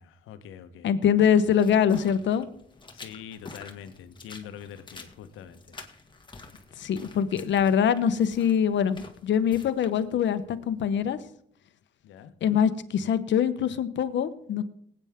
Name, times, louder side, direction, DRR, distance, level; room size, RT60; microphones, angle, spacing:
voice 1, 0.0-1.0 2.9-5.8 12.0-12.4, left 8 dB, 90° left, 10 dB, 1.1 m, -44 dB
voice 2, 0.8-2.5 6.8-11.2 12.4-14.6, left 8 dB, 65° left, 12 dB, 1.1 m, -24 dB
sound 1, 1.2-11.2, left 3 dB, 25° left, 1.9 m, -49 dB
19.5 x 9.0 x 3.7 m, 0.67 s
cardioid pair, 90°, 20 cm